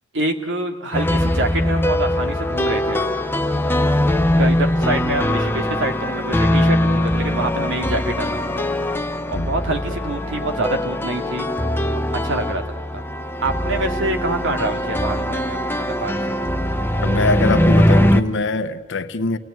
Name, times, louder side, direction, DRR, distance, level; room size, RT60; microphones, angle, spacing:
voice 1, 0.1-3.2 3.8-8.9 9.3-11.5 11.9-12.6 12.9-13.0 13.4-16.4, right 2 dB, 65° right, 2.4 m, -26 dB
sound 1, 0.9-18.2, left 1 dB, 10° left, 0.8 m, -21 dB
voice 2, 17.0-19.4, left 3 dB, 65° left, 1.1 m, -23 dB
29.0 x 18.5 x 9.4 m
head